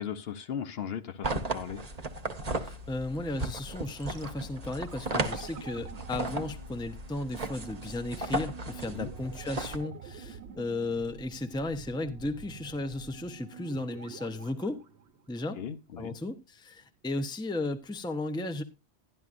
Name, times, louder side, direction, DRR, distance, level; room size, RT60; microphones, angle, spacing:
voice 1, 0.0-1.8 8.9-9.1 15.6-16.2, left 8 dB, 65° left, 0.9 m, -37 dB
sound 1, 1.2-9.8, right 2 dB, 40° right, 1.0 m, -36 dB
voice 2, 2.6-14.8 15.3-15.6 16.0-18.6, left 2 dB, 5° left, 0.6 m, -35 dB
sound 2, 3.8-15.8 16.1-16.2, right 6 dB, 75° right, 1.1 m, -48 dB
12.0 x 11.0 x 2.5 m
omnidirectional pair, 1.1 m